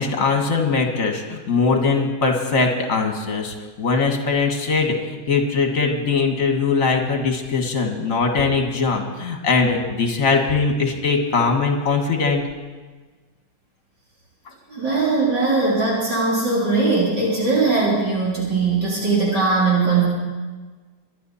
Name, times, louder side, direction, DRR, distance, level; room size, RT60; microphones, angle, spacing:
voice 1, 0.0-12.4, left 4 dB, 45° left, 3 dB, 2.1 m, -21 dB
voice 2, 14.7-20.0, right 3 dB, 60° right, -6 dB, 4.0 m, -20 dB
24.0 x 11.0 x 4.3 m, 1.3 s
omnidirectional pair, 2.1 m